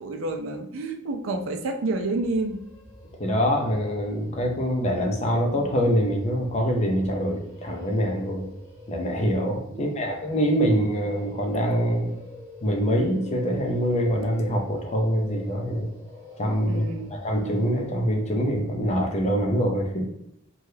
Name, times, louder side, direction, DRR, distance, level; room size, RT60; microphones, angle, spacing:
voice 1, 0.0-2.6 9.7-10.1 16.7-17.1, right 2 dB, 70° right, 4 dB, 0.4 m, -29 dB
sound 1, 2.1-19.0, left 2 dB, 10° right, 1.4 m, -46 dB
voice 2, 3.2-8.5 8.9-12.2 12.6-15.9 16.4-16.8 17.1-20.1, equal, 35° left, 2 dB, 0.5 m, -24 dB
3.3 x 2.3 x 2.7 m, 0.78 s
head